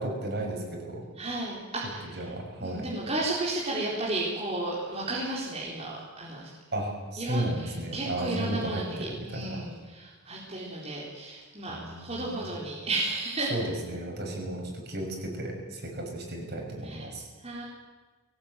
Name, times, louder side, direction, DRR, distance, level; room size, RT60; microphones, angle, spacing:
voice 1, 0.0-1.0 2.0-2.9 6.7-9.6 11.7-12.5 13.5-17.2, right 1 dB, 50° right, 1 dB, 6.1 m, -34 dB
voice 2, 1.2-2.2 2.6-6.5 7.2-13.5 16.8-17.0 17.4-17.6, right 2 dB, 30° right, -5 dB, 4.3 m, -33 dB
21.5 x 18.5 x 9.2 m, 1.3 s
head